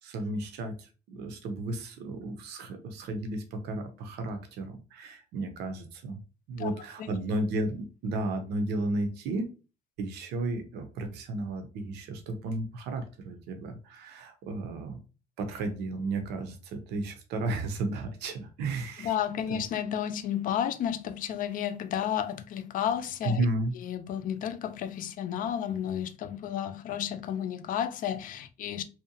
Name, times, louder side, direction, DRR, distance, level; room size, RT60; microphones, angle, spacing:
voice 1, 0.0-6.2 6.5-9.5 10.0-15.0 15.4-19.1 19.5-19.6 23.2-23.7, right 2 dB, 80° right, 0.6 m, -33 dB
voice 2, 19.0-23.5 23.8-28.8, left 9 dB, 55° left, 0.4 m, -32 dB
2.7 x 2.1 x 2.7 m
cardioid pair, 110°, 17 cm